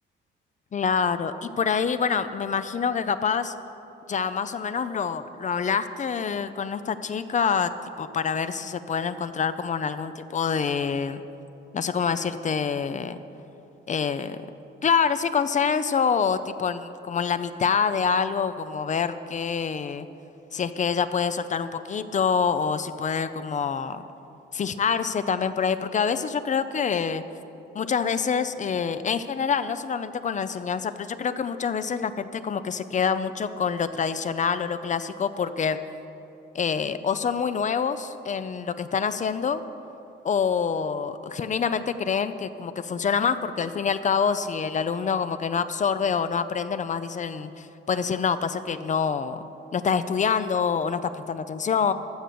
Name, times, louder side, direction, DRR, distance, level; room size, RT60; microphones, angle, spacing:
voice 1, 0.7-3.5 4.1-7.7 8.0-11.2 11.7-13.2 13.9-14.4 14.8-20.1 20.5-24.0 24.5-27.2 27.7-35.8 36.5-39.6 40.2-49.4 49.7-51.9, left 6 dB, 40° left, 12 dB, 0.6 m, -26 dB
14.5 x 6.2 x 6.9 m, 2.9 s
cardioid pair, 90°, 20 cm